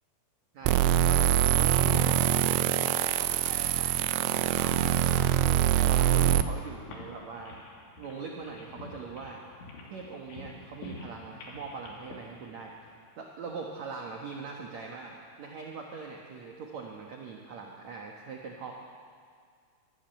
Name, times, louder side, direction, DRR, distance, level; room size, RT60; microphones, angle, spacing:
voice 1, 0.5-7.6 8.0-9.4 9.9-18.7, right 4 dB, 65° right, 0 dB, 1.8 m, -42 dB
sound 1, 0.6-13.0, left 2 dB, 85° left, 5.3 m, -46 dB
sound 2, 0.7-6.4, right 12 dB, 80° right, 2.9 m, -24 dB
24.5 x 12.5 x 9.2 m, 2.1 s
omnidirectional pair, 5.5 m